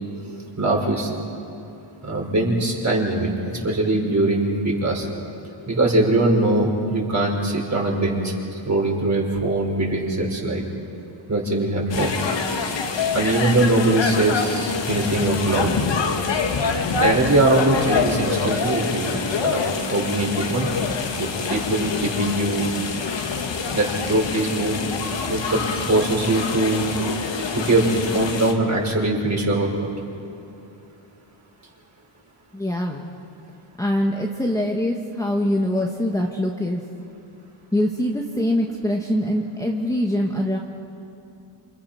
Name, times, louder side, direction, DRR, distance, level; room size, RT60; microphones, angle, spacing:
voice 1, 0.2-1.1 2.0-3.3 3.6-5.1 5.7-8.2 8.7-10.6 11.3-12.2 13.1-15.7 17.0-19.6 19.9-20.7 21.2-22.6 23.7-24.9 25.3-25.6 25.9-26.9 27.5-29.9, right 2 dB, 35° right, -1 dB, 5.7 m, -21 dB
sound 1, 11.9-28.5, left 5 dB, 60° left, 2.2 m, -26 dB
voice 2, 32.5-33.0 33.8-36.8 37.7-40.6, left 1 dB, 5° left, -1 dB, 1.7 m, -23 dB
28.5 x 26.5 x 6.0 m, 2.6 s
cardioid pair, 95°, 48 cm